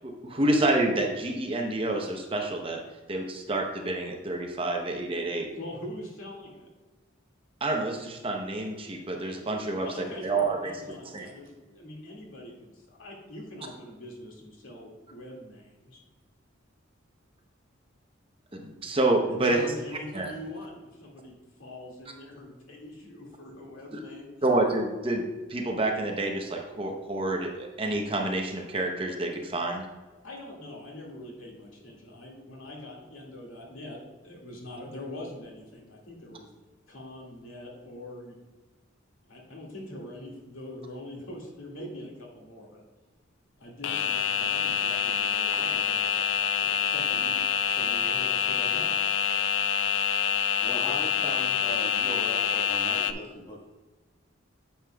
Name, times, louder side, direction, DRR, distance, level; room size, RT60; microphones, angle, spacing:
voice 1, 0.0-2.8 3.1-5.5 7.6-9.9 10.2-10.8 11.1-11.3 18.5-19.6 20.1-20.3 23.9-24.0 24.4-25.2 25.5-29.8, right 2 dB, 25° right, 2 dB, 0.7 m, -28 dB
voice 2, 5.5-6.7 9.3-16.0 19.3-24.3 30.2-36.5 36.9-38.3 39.3-42.8 43.6-47.3 47.7-49.0, left 1 dB, 80° left, -2 dB, 2.1 m, -43 dB
sound 1, 43.8-53.1, left 7 dB, 65° left, 0.4 m, -26 dB
voice 3, 50.6-53.7, equal, 20° left, -3 dB, 1.5 m, -39 dB
9.4 x 6.8 x 2.3 m, 1.2 s
head